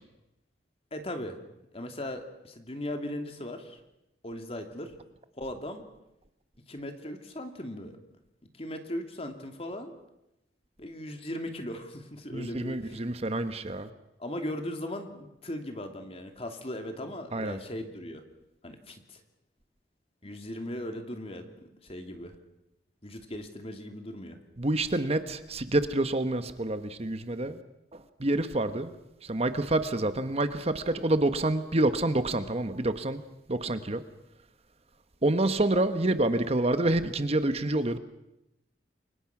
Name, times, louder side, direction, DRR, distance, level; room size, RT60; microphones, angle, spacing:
voice 1, 0.9-1.4 1.7-3.8 4.2-4.9 5.4-5.9 6.7-8.0 8.6-9.9 10.8-13.0 14.2-18.2 18.6-19.2 20.2-22.4 23.0-24.4, left 1 dB, 35° left, 5 dB, 2.7 m, -38 dB
voice 2, 12.3-13.9 17.3-17.6 24.6-27.6 27.9-28.9 29.2-33.2 33.5-34.0 35.2-38.0, right 2 dB, 35° right, 10 dB, 1.1 m, -27 dB
29.0 x 23.5 x 6.0 m, 0.89 s
head